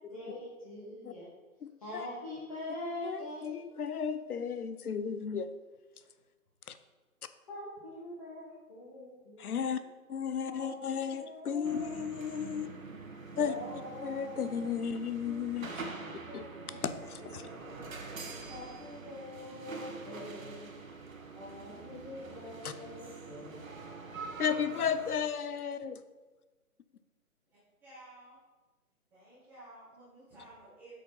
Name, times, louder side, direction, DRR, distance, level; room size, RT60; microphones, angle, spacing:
voice 1, 0.1-1.3 1.8-3.7 7.5-9.6 10.5-10.8 11.2-12.3 13.4-14.7 15.2-16.0 16.3-17.9 18.5-20.9 21.3-24.0, left 1 dB, 25° left, -8 dB, 1.3 m, -45 dB
voice 2, 1.6-2.1 3.0-5.5 6.7-6.8 9.4-9.8 10.1-12.7 13.4-13.5 14.0-15.8 16.3-16.4 16.8-17.5 22.6-22.7 24.4-26.0, left 7 dB, 75° left, 12 dB, 0.8 m, -34 dB
sound 1, 11.6-25.2, right 4 dB, 60° right, 1.4 m, -45 dB
voice 3, 27.8-28.4 29.1-31.0, right 1 dB, 5° right, -13 dB, 1.7 m, -53 dB
7.9 x 6.5 x 3.9 m, 1.2 s
hypercardioid pair, 170°, 44 cm